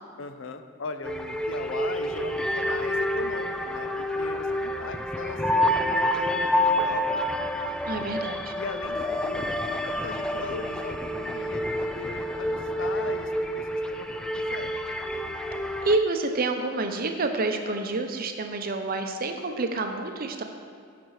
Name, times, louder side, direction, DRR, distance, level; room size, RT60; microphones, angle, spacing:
voice 1, 0.2-7.2 8.5-14.7, left 4 dB, 65° left, 9 dB, 0.5 m, -39 dB
sound 1, 1.0-16.0, left 1 dB, 5° left, 0.3 m, -28 dB
voice 2, 7.9-8.5 15.8-20.4, right 3 dB, 45° right, 5 dB, 0.7 m, -28 dB
13.0 x 5.9 x 3.2 m, 2.2 s
head